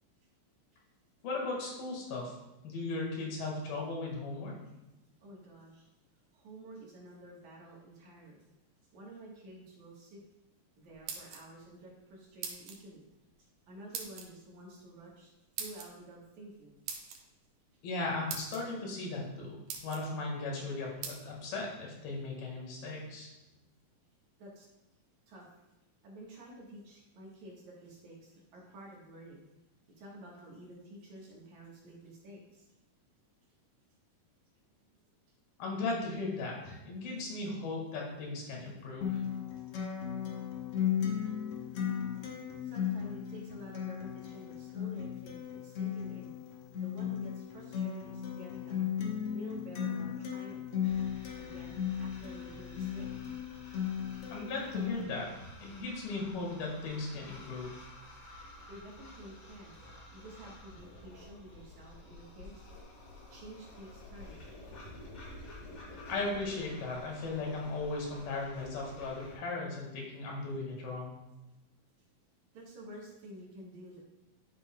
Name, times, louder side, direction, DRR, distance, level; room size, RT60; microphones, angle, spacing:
voice 1, 1.2-2.3 2.6-4.5 17.8-19.6 19.8-23.3 35.6-39.2 54.3-57.7 66.1-71.1, left 3 dB, 90° left, -2 dB, 3.7 m, -37 dB
voice 2, 5.2-5.9 6.3-8.4 8.9-10.2 10.8-13.0 13.4-15.3 15.6-16.8 24.4-24.7 25.3-25.6 26.0-29.5 30.0-32.7 42.6-46.4 46.7-48.9 49.3-50.6 51.4-53.1 58.6-59.8 60.1-62.6 63.3-64.4 72.5-74.0, right 1 dB, 60° right, -3 dB, 2.6 m, -50 dB
sound 1, 10.9-11.7 12.4-12.8 13.9-14.3 15.6-15.9 16.9-17.2 17.9-18.0 18.3-18.6 19.2-19.3 19.7-20.1 21.0-21.2, right 7 dB, 85° right, 2.8 m, -40 dB
Acoustic guitar, 39.0-55.0, left 9 dB, 70° left, 1.4 m, -36 dB
sound 2, 50.8-69.4, left 1 dB, 50° left, 3.5 m, -51 dB
11.5 x 6.7 x 2.3 m, 0.99 s
omnidirectional pair, 4.1 m